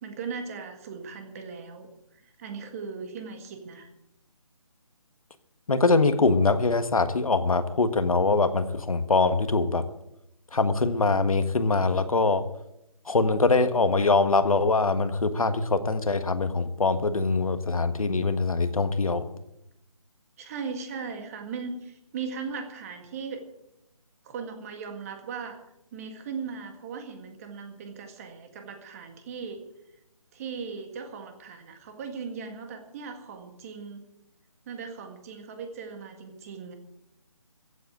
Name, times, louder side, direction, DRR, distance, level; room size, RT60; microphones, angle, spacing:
voice 1, 0.0-1.9 2.2-3.9 20.4-23.4 24.2-25.6 25.9-29.6 30.3-34.0 34.7-36.8, right 5 dB, 25° right, 6 dB, 1.9 m, -38 dB
voice 2, 5.7-9.8 10.5-12.4 13.0-19.3, left 3 dB, 75° left, 10 dB, 1.6 m, -23 dB
15.0 x 8.3 x 8.9 m, 0.84 s
figure-of-eight pair, 155°, 18 cm